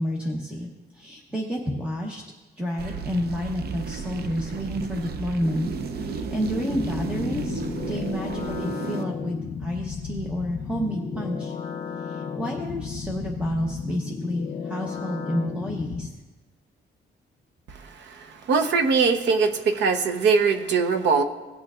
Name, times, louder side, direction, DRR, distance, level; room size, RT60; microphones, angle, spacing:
voice 1, 0.0-2.2 2.6-5.7 6.0-7.6 7.9-11.5 12.0-16.1, equal, 5° right, -1 dB, 0.9 m, -30 dB
sound 1, 2.8-9.0, right 4 dB, 60° right, 0.6 m, -33 dB
sound 2, 6.7-16.1, left 6 dB, 50° left, 0.7 m, -33 dB
voice 2, 18.5-21.2, right 5 dB, 90° right, 7 dB, 0.9 m, -21 dB
18.0 x 8.8 x 2.4 m, 1.2 s
cardioid pair, 150°, 18 cm